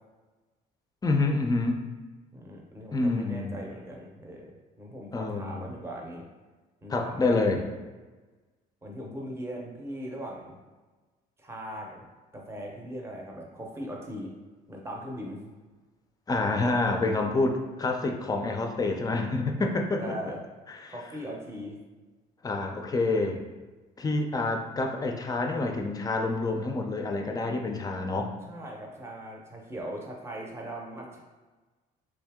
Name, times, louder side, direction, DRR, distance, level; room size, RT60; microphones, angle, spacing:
voice 1, 1.0-1.8 2.9-3.6 5.1-5.7 6.9-7.6 16.3-20.1 20.8-20.9 22.4-23.4 24.0-28.3, left 3 dB, 20° left, 3 dB, 0.4 m, -27 dB
voice 2, 2.3-6.3 6.8-7.7 8.8-10.6 11.4-12.1 12.3-14.3 14.7-15.5 20.0-20.4 20.9-21.8 28.5-31.2, equal, 15° right, -1 dB, 0.7 m, -39 dB
3.4 x 2.7 x 3.5 m, 1.3 s
cardioid pair, 110°, 17 cm